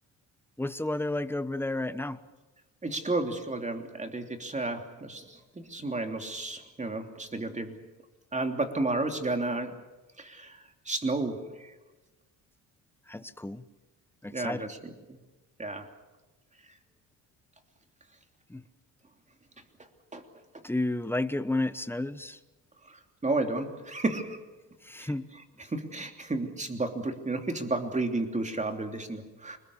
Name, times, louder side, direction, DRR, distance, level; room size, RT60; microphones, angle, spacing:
voice 1, 0.6-2.2 13.1-13.6 14.2-14.7 18.5-18.6 20.6-22.4 24.8-25.3, left 2 dB, 5° left, 13 dB, 1.0 m, -31 dB
voice 2, 2.8-7.8 8.3-9.8 10.2-11.7 14.3-15.2 15.6-15.9 20.1-20.2 22.9-24.4 25.0-25.1 25.7-29.6, right 2 dB, 15° right, 5 dB, 3.1 m, -32 dB
26.0 x 21.0 x 7.2 m, 1.2 s
cardioid pair, 115°, 41 cm